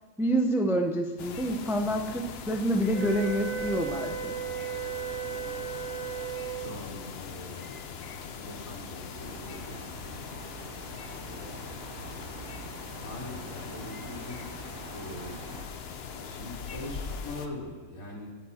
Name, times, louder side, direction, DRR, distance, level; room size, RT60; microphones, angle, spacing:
voice 1, 0.2-4.3, right 1 dB, 5° right, 4 dB, 0.4 m, -27 dB
sound 1, 1.2-17.5, left 6 dB, 55° left, 0.9 m, -41 dB
sound 2, 2.9-6.8, right 8 dB, 60° right, 4.5 m, -35 dB
voice 2, 5.4-5.8 6.2-10.8 11.3-11.6 13.0-14.6 14.9-18.3, left 1 dB, 80° left, -4 dB, 3.0 m, -43 dB
sound 3, 9.1-15.7, right 4 dB, 90° right, 1.6 m, -46 dB
12.5 x 8.9 x 4.3 m, 1.3 s
omnidirectional pair, 1.4 m